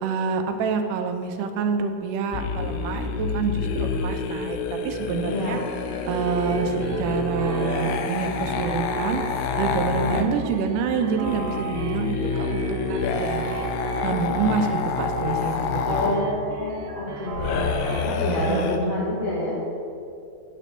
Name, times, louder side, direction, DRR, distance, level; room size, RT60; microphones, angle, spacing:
voice 1, 0.0-4.6 4.8-5.6 6.1-9.2 9.6-13.7 14.0-15.8 18.3-19.0, right 5 dB, 90° right, 6 dB, 2.2 m, -27 dB
sound 1, 2.3-10.3 11.2-16.2 17.3-18.8, left 5 dB, 75° left, 1.8 m, -28 dB
voice 2, 5.3-5.7 10.0-10.3 15.8-19.6, left 1 dB, 45° left, -7 dB, 1.1 m, -28 dB
sound 2, 5.9-18.0, right 3 dB, 65° right, 1.7 m, -34 dB
10.0 x 4.2 x 6.7 m, 2.6 s
omnidirectional pair, 3.7 m